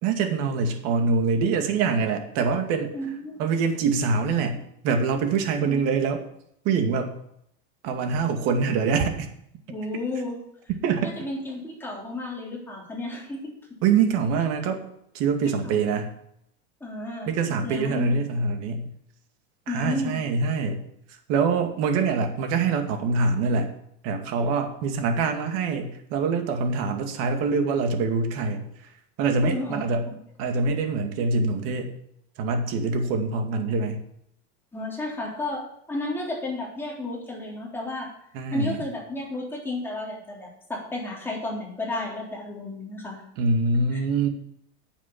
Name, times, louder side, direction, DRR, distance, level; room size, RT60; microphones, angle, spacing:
voice 1, 0.0-2.9 3.4-4.6 4.8-6.2 6.6-7.1 7.8-9.3 10.8-11.1 13.8-14.8 15.1-16.1 17.3-18.9 19.7-20.8 21.3-23.7 24.0-28.7 29.2-30.1 30.4-31.9 32.4-34.0 38.3-38.8 43.4-44.3, right 4 dB, 50° right, 5 dB, 2.3 m, -24 dB
voice 2, 2.9-3.4 5.6-5.9 9.7-10.4 11.0-13.5 15.6-15.8 16.8-17.3 17.6-18.1 19.7-20.1 29.4-30.1 34.7-38.1 38.5-43.2 43.9-44.0, left 2 dB, 5° left, -3 dB, 3.6 m, -32 dB
10.5 x 7.3 x 8.6 m, 0.73 s
supercardioid pair, 155°, 32 cm